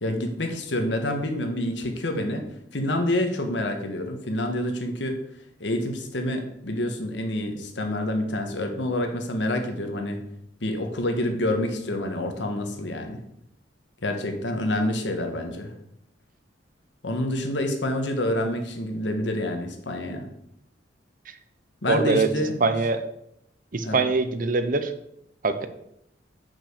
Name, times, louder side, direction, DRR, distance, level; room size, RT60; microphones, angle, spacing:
voice 1, 0.0-2.4 2.7-5.2 5.6-10.2 10.6-13.2 14.0-15.7 17.0-20.2 21.8-22.7 23.8-24.0, left 1 dB, 75° left, 5 dB, 1.3 m, -27 dB
voice 2, 21.9-22.3 22.6-23.0 23.7-24.9 25.4-25.7, right 3 dB, 45° right, 10 dB, 0.6 m, -23 dB
5.9 x 5.5 x 6.5 m, 0.78 s
head